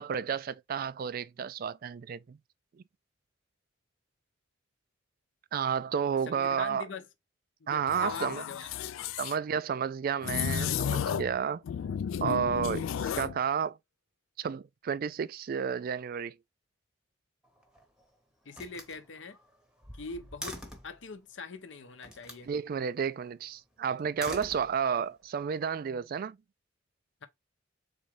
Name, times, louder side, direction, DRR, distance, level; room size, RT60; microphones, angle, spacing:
voice 1, 0.0-2.4 5.5-6.9 7.7-8.4 9.2-11.6 12.2-13.8 14.4-16.3 22.5-26.4, right 7 dB, 45° right, 0.3 m, -31 dB
voice 2, 6.3-7.1 7.6-9.1 18.4-19.4 19.9-22.5 27.2-27.3, left 4 dB, 65° left, 0.7 m, -43 dB
sound 1, 7.9-9.3 10.2-11.4 11.6-13.4, left 8 dB, 85° left, 0.3 m, -33 dB
Slam, 17.4-18.0 18.5-21.0 22.0-22.5 24.0-25.1, equal, 5° right, 0.9 m, -45 dB
4.0 x 3.5 x 3.2 m
head